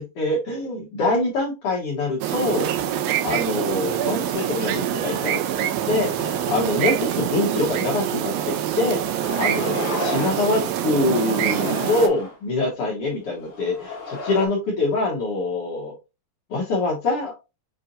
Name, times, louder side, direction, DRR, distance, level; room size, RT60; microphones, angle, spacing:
voice 1, 0.0-2.7 3.2-5.5 5.9-15.9 16.5-17.3, left 2 dB, 80° left, -3 dB, 1.3 m, -25 dB
sound 1, 2.2-12.1, right 11 dB, 85° right, 2.4 m, -25 dB
sound 2, 6.2-6.9 7.3-7.4 8.5-8.6 9.1-10.5 10.9-12.4 13.2-14.5, left 3 dB, 50° left, 1.3 m, -33 dB
6.9 x 2.6 x 2.8 m, 0.27 s
omnidirectional pair, 4.1 m